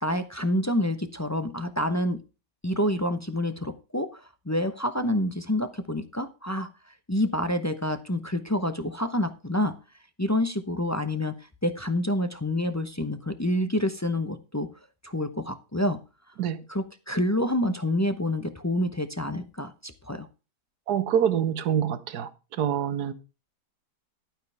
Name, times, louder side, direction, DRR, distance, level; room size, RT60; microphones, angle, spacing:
voice 1, 0.0-2.2 2.6-6.7 7.1-9.7 10.2-11.3 11.6-14.7 15.0-16.0 16.7-20.3, left 1 dB, 20° left, 0.5 m, -27 dB
voice 2, 20.9-23.1, right 8 dB, 65° right, 1.5 m, -26 dB
12.0 x 9.2 x 3.4 m
omnidirectional pair, 1.9 m